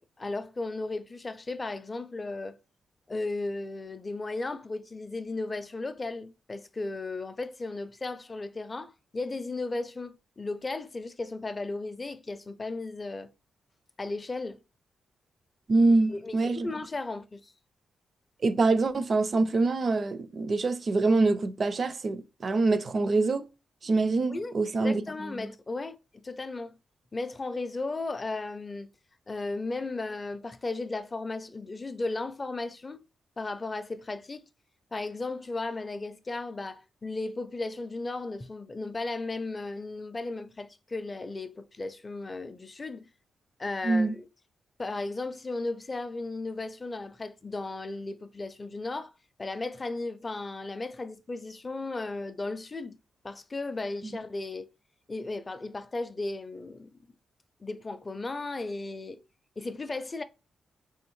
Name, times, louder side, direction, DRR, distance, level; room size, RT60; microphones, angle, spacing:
voice 1, 0.2-2.6 3.1-13.3 14.0-14.6 16.1-17.5 24.3-26.7 27.1-28.9 29.3-33.0 33.4-34.4 34.9-43.1 43.6-44.3 44.8-49.1 49.4-53.0 53.2-54.7 55.1-56.9 57.6-59.2 59.6-60.2, left 3 dB, 25° left, 0.4 m, -35 dB
voice 2, 15.7-16.7 18.4-23.4 23.8-25.5 43.8-44.2 54.0-54.1, right 3 dB, 40° right, 0.5 m, -25 dB
3.7 x 3.5 x 3.1 m
cardioid pair, 120°, 0 cm